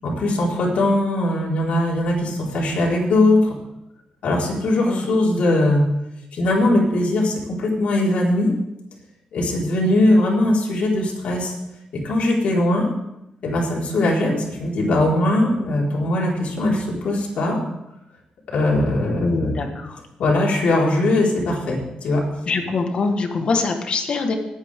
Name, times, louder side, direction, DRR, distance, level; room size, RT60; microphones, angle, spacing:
voice 1, 0.0-3.4 4.2-5.8 6.3-8.5 9.3-11.5 11.9-12.9 13.4-17.6 18.5-19.5 20.2-22.2, left 1 dB, 70° left, -4 dB, 4.6 m, -20 dB
voice 2, 19.2-20.0 22.5-24.3, left 4 dB, 50° left, 5 dB, 1.6 m, -23 dB
20.5 x 9.5 x 3.7 m, 0.86 s
cardioid pair, 130°, 2 cm